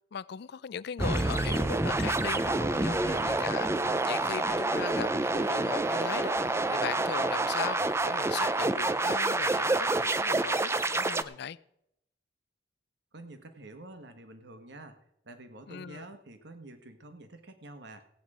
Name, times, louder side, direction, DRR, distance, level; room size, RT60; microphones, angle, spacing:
voice 1, 0.1-3.7 4.0-6.4 6.7-11.6 15.7-16.1, left 7 dB, 65° left, 0.4 m, -38 dB
sound 1, 1.0-11.2, right 2 dB, 15° right, 0.5 m, -28 dB
voice 2, 13.1-15.0 15.2-18.1, right 2 dB, 65° right, 1.5 m, -48 dB
16.0 x 9.3 x 4.9 m
head